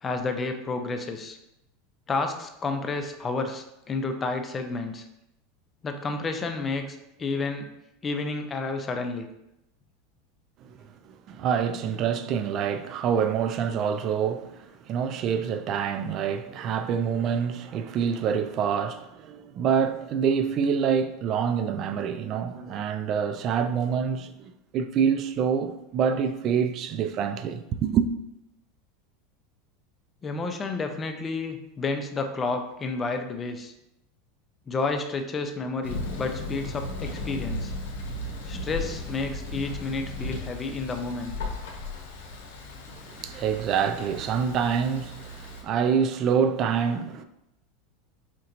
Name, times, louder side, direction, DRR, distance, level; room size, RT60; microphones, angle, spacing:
voice 1, 0.0-1.4 2.1-5.0 5.8-7.7 8.0-9.3 30.2-33.7 34.7-37.7 38.5-41.4, left 3 dB, 25° left, 0.5 m, -30 dB
voice 2, 11.1-28.1 42.9-47.2, right 7 dB, 45° right, 0.3 m, -26 dB
Thunder, 35.8-45.6, left 2 dB, 85° left, 0.7 m, -36 dB
4.3 x 2.8 x 2.5 m
supercardioid pair, 110°, 0 cm